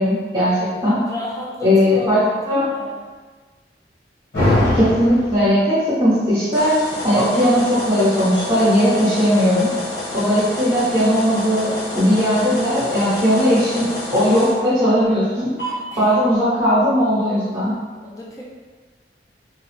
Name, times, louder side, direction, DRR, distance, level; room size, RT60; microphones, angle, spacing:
voice 1, 0.0-1.0 1.6-2.2 2.5-2.6 4.5-6.8 7.0-9.8 10.1-15.5 16.0-17.8, equal, 25° right, -12 dB, 1.1 m, -18 dB
voice 2, 1.1-3.0 15.9-16.1 18.0-18.4, left 1 dB, 20° left, -5 dB, 0.6 m, -32 dB
sound 1, 4.3-5.5 6.5-14.5 15.6-15.7, left 1 dB, 85° left, 1.4 m, -26 dB
4.1 x 2.2 x 3.2 m, 1.4 s
head